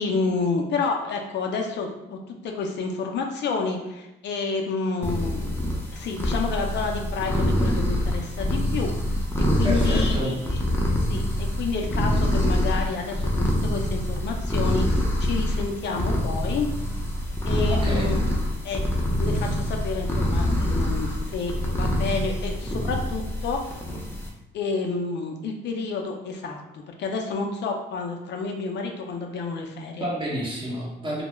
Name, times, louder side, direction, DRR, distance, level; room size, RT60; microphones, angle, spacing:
voice 1, 0.0-5.5 5.9-10.6 11.1-16.7 17.4-18.3 18.6-18.8 19.2-23.8 24.5-30.1, left 4 dB, 60° left, 2 dB, 0.4 m, -30 dB
sound 1, 5.0-24.3, left 1 dB, 10° left, 0.5 m, -25 dB
voice 2, 9.6-10.4 17.7-18.1 30.0-31.2, right 1 dB, 25° right, -5 dB, 0.9 m, -29 dB
2.2 x 2.0 x 3.0 m, 0.92 s
cardioid pair, 90°, 20 cm